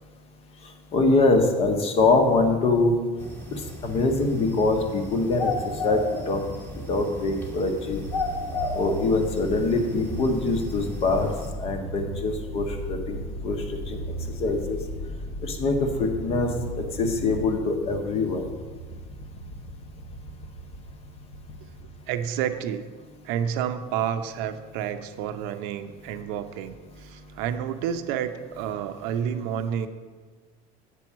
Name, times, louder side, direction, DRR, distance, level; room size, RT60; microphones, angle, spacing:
voice 1, 0.9-3.0 3.5-5.5 5.8-6.5 6.9-8.0 8.7-11.3 11.6-14.0 14.4-14.8 15.4-16.5 16.8-18.5, left 3 dB, 35° left, 5 dB, 0.9 m, -24 dB
sound 1, 3.2-11.5, left 2 dB, 10° left, 1.0 m, -34 dB
sound 2, 7.9-17.4, equal, 55° left, 1.0 m, -36 dB
sound 3, 12.5-22.6, right 1 dB, 85° left, 1.0 m, -41 dB
voice 2, 22.1-22.8 23.2-29.9, right 9 dB, 75° right, 9 dB, 0.6 m, -30 dB
8.4 x 4.6 x 7.2 m, 1.4 s
cardioid pair, 175°, 17 cm